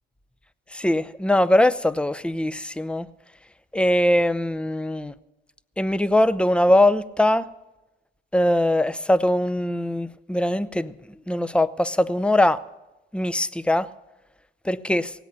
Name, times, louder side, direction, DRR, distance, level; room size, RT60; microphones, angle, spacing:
voice 1, 0.7-3.1 3.7-5.1 5.8-7.4 8.3-10.9 11.3-12.6 13.1-13.9 14.6-15.1, left 1 dB, 5° left, 0.6 m, -21 dB
18.0 x 8.2 x 9.4 m
cardioid pair, 90°, 20 cm